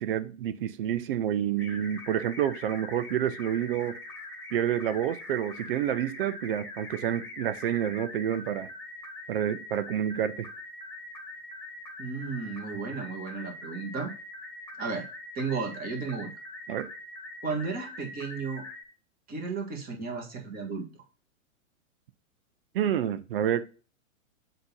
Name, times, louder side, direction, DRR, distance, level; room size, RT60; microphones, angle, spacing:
voice 1, 0.0-4.0 4.5-8.7 9.3-10.5 16.7-16.9 22.7-23.6, right 10 dB, 45° right, 0.7 m, -29 dB
sound 1, 1.6-18.8, left 2 dB, 5° left, 1.7 m, -43 dB
voice 2, 12.0-14.1 14.8-15.1 15.4-16.3 17.4-18.6 19.3-20.9, right 4 dB, 20° right, 1.8 m, -34 dB
7.6 x 3.0 x 5.3 m
figure-of-eight pair, 110°, 40 cm